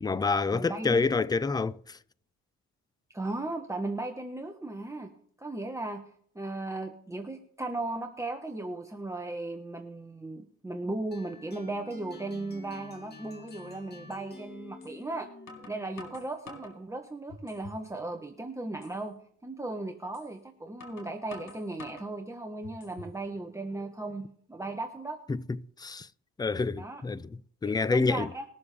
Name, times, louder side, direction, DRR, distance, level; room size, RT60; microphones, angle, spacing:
voice 1, 0.0-1.8 25.3-25.4 25.8-26.1 26.4-27.2 27.6-28.3, left 4 dB, 15° left, 0.4 m, -27 dB
voice 2, 0.5-1.1 3.1-5.1 5.4-6.0 6.3-15.3 15.7-19.2 19.4-25.2 26.8-27.0 27.6-28.4, right 2 dB, 10° right, 1.2 m, -36 dB
sound 1, 11.1-16.2, left 3 dB, 35° left, 1.8 m, -49 dB
sound 2, 13.5-13.6 14.8-14.9 15.5-16.8 17.3-17.8 18.2-18.3 18.8-19.0 20.1-20.3 20.8-22.1 22.6-23.2, left 3 dB, 75° left, 4.3 m, -47 dB
20.5 x 7.0 x 3.4 m
cardioid pair, 90°, 30 cm